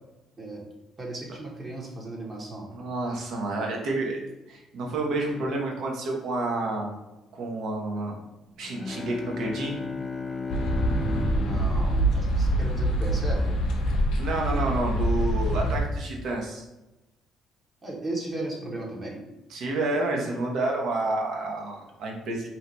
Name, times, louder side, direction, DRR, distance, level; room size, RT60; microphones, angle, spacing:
voice 1, 1.0-2.7 11.0-13.6 17.8-19.2, right 2 dB, 35° right, -3 dB, 1.0 m, -36 dB
voice 2, 2.7-4.2 4.5-7.0 7.3-8.2 8.6-9.8 14.2-16.6 19.5-22.5, right 2 dB, 70° right, 0 dB, 0.8 m, -29 dB
Bowed string instrument, 8.6-13.2, left 4 dB, 35° left, 0.3 m, -36 dB
sound 1, 10.5-15.8, right 1 dB, 75° left, 0.6 m, -25 dB
2.8 x 2.2 x 3.9 m, 1.0 s
supercardioid pair, 70°, 0 cm